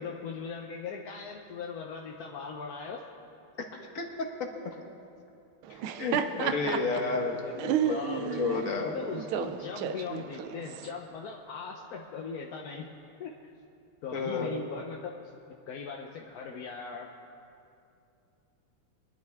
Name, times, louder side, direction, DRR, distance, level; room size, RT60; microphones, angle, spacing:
voice 1, 0.0-3.0 7.4-12.9 13.2-13.3 14.0-15.2 15.7-17.1, left 5 dB, 60° left, 1 dB, 1.0 m, -39 dB
voice 2, 3.9-4.5 6.0-7.4 7.9-8.0 8.3-9.0 14.1-14.5, left 4 dB, 45° left, 2 dB, 1.5 m, -31 dB
Laughter, 5.6-10.9, right 9 dB, 80° right, 1.5 m, -32 dB
23.5 x 11.5 x 3.5 m, 2.6 s
omnidirectional pair, 2.3 m